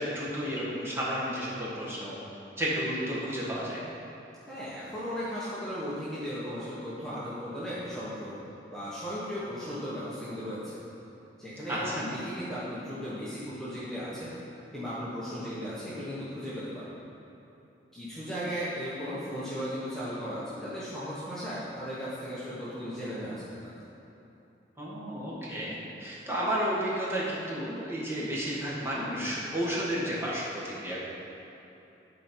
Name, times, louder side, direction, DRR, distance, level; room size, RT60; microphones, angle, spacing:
voice 1, 0.0-2.2 2.6-3.8 11.7-12.1 24.8-31.0, equal, 15° right, -8 dB, 1.7 m, -32 dB
voice 2, 4.5-8.4 8.7-10.8 11.4-14.3 14.7-16.9 17.9-23.8, equal, 5° left, -11 dB, 1.2 m, -36 dB
11.5 x 4.6 x 4.5 m, 2.9 s
head